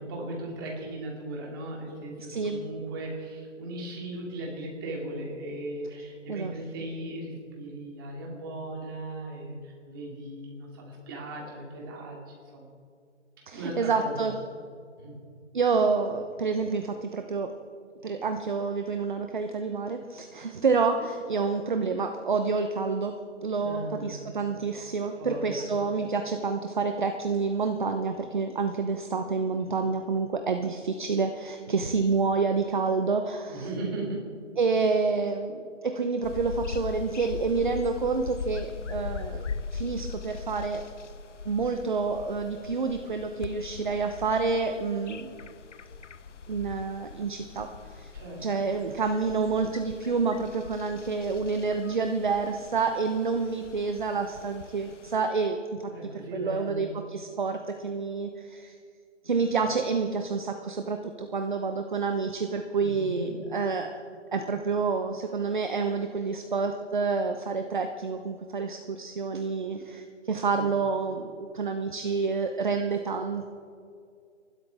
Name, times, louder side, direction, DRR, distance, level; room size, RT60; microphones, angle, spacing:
voice 1, 0.0-12.7 13.5-14.3 15.0-15.2 23.6-24.3 25.2-25.7 33.5-34.2 48.1-48.4 55.9-56.9 62.8-63.3 70.5-70.7, right 1 dB, 20° right, -2 dB, 2.7 m, -37 dB
voice 2, 2.3-2.6 6.3-6.5 13.5-14.3 15.5-17.5 18.0-23.1 23.4-33.7 34.6-40.8 41.4-45.3 46.5-47.7 47.9-48.1 48.4-58.8 59.2-64.0 64.3-73.5, right 4 dB, 40° right, 6 dB, 0.9 m, -28 dB
sound 1, 36.2-55.2, left 5 dB, 75° left, 0.9 m, -41 dB
26.0 x 12.5 x 3.6 m, 2.2 s
hypercardioid pair, 170°, 37 cm